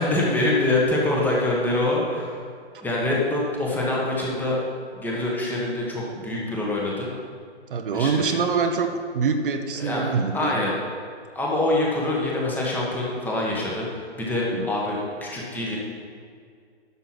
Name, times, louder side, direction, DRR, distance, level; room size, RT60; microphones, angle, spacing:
voice 1, 0.0-2.4 2.8-4.6 4.9-7.1 7.9-8.4 9.8-10.7 11.3-15.8, left 2 dB, 5° left, -4 dB, 1.5 m, -25 dB
voice 2, 7.7-10.5 14.5-14.7, right 5 dB, 50° right, 5 dB, 1.1 m, -24 dB
11.5 x 6.9 x 5.9 m, 2.2 s
hypercardioid pair, 145°, 33 cm